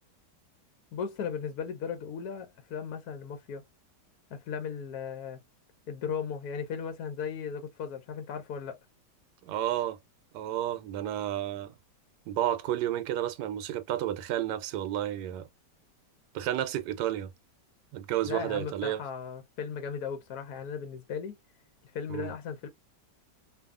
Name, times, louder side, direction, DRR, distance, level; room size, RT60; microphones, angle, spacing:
voice 1, 0.9-3.6 4.3-5.4 5.9-8.8 18.3-21.4 21.8-22.7, left 6 dB, 70° left, 1.1 m, -36 dB
voice 2, 9.4-10.0 10.3-11.7 12.3-15.5 16.3-17.3 17.9-19.0 22.1-22.3, right 12 dB, 80° right, 1.2 m, -31 dB
2.6 x 2.6 x 2.3 m
omnidirectional pair, 1.9 m